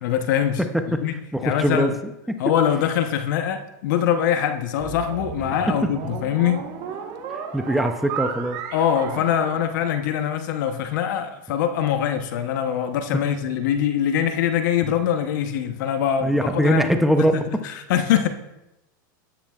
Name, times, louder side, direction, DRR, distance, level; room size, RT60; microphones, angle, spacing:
voice 1, 0.0-1.1 1.4-1.9 2.4-6.6 8.7-16.9 17.2-18.3, left 9 dB, 70° left, 8 dB, 0.9 m, -23 dB
voice 2, 1.3-1.9 7.3-8.6 16.2-17.4, right 1 dB, ahead, 6 dB, 0.6 m, -21 dB
sound 1, 4.8-10.3, right 7 dB, 45° right, 1.3 m, -34 dB
13.0 x 10.0 x 2.4 m, 0.91 s
supercardioid pair, 120°, 11 cm